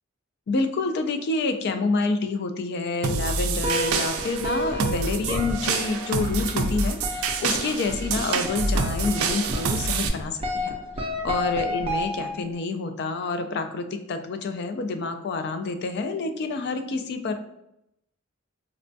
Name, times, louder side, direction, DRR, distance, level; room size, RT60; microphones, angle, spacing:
voice 1, 0.5-10.7 11.2-17.3, left 3 dB, 50° left, 8 dB, 0.3 m, -28 dB
sound 1, 3.0-10.1, right 4 dB, 90° right, 0.4 m, -27 dB
sound 2, 3.6-12.6, equal, 25° right, 0.5 m, -31 dB
4.1 x 2.2 x 2.6 m, 0.82 s
head